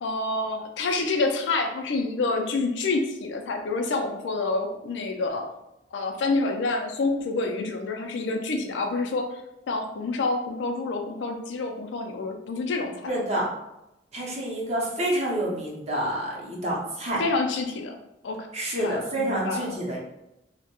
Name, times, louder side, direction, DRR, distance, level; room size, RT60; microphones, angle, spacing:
voice 1, 0.0-5.5 5.9-9.3 9.7-13.1 17.2-17.9 18.2-18.5 18.8-19.7, left 3 dB, 70° left, 4 dB, 0.4 m, -28 dB
voice 2, 13.1-13.5 14.1-17.2 18.5-20.0, right 1 dB, 35° right, -3 dB, 0.6 m, -28 dB
2.2 x 2.1 x 2.8 m, 0.89 s
head